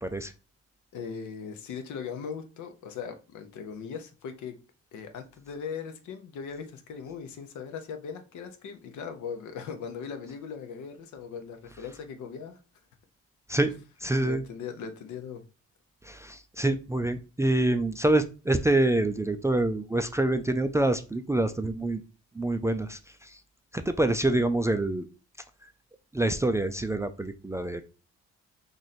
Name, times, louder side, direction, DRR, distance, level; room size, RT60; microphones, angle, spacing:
voice 1, 0.0-0.3 13.5-13.7 14.0-14.4 16.0-22.0 22.3-23.4 23.7-25.1 26.1-27.8, right 2 dB, 10° right, 0.3 m, -26 dB
voice 2, 0.9-4.6 4.9-12.6 14.2-15.4, left 6 dB, 75° left, 0.8 m, -39 dB
3.0 x 2.6 x 4.1 m
cardioid pair, 90°, 30 cm